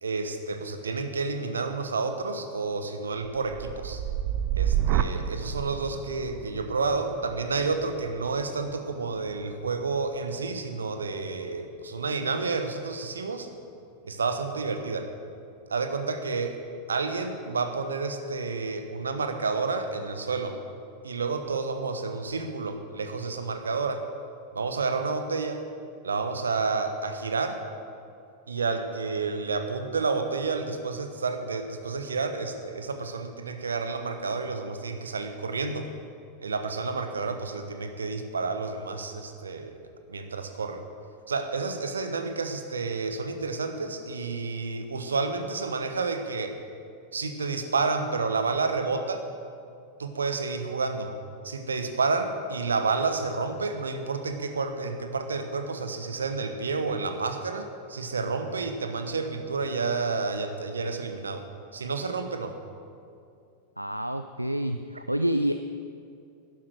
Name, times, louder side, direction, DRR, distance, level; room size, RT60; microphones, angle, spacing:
voice 1, 0.0-4.0 4.6-13.5 14.0-15.1 15.7-16.6 16.9-20.6 21.0-24.0 24.5-25.6 26.0-27.6 28.5-35.9 36.4-39.7 40.1-40.8 41.3-46.5 47.1-49.2 50.0-51.1 51.4-61.4 61.7-62.5, right 4 dB, 70° right, 7 dB, 1.0 m, -30 dB
sound 1, 3.2-11.3 11.7-12.2, right 10 dB, 40° right, 0.6 m, -32 dB
voice 2, 63.8-65.6, right 1 dB, 90° right, 9 dB, 0.3 m, -28 dB
12.0 x 10.5 x 6.4 m, 2.5 s
figure-of-eight pair, 90°, 0 cm